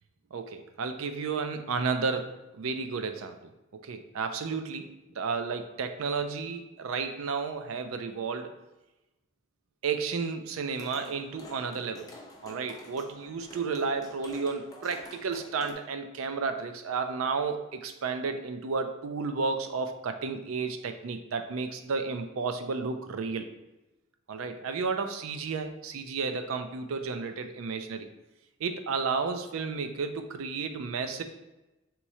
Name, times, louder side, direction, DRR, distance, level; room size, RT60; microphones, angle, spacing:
voice 1, 0.3-8.5 9.8-12.1 12.4-23.5 24.3-28.1 28.6-31.2, right 5 dB, 90° right, 7 dB, 0.4 m, -32 dB
sound 1, 10.7-15.7, left 1 dB, 20° left, 0.5 m, -49 dB
3.6 x 3.0 x 4.1 m, 0.99 s
head